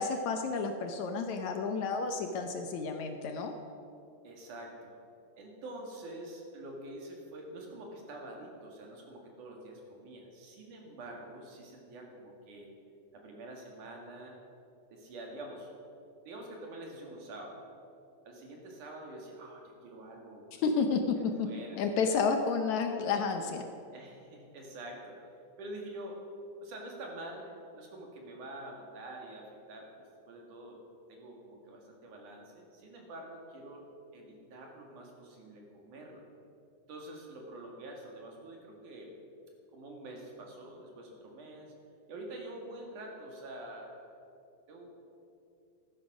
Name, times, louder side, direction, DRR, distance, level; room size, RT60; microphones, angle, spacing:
voice 1, 0.0-3.5 20.6-21.5 21.8-23.6, left 5 dB, 70° left, 5 dB, 2.0 m, -31 dB
voice 2, 4.2-5.0 5.4-12.7 13.1-14.4 14.9-15.7 16.3-17.6 18.3-20.6 21.2-21.8 23.9-25.2 25.6-26.2 26.6-29.9 30.3-30.8 31.1-33.9 34.1-36.3 36.9-39.1 39.7-41.7 42.1-44.1 44.7-44.9, right 1 dB, 65° right, 0 dB, 3.6 m, -46 dB
15.5 x 12.0 x 6.2 m, 2.6 s
omnidirectional pair, 3.8 m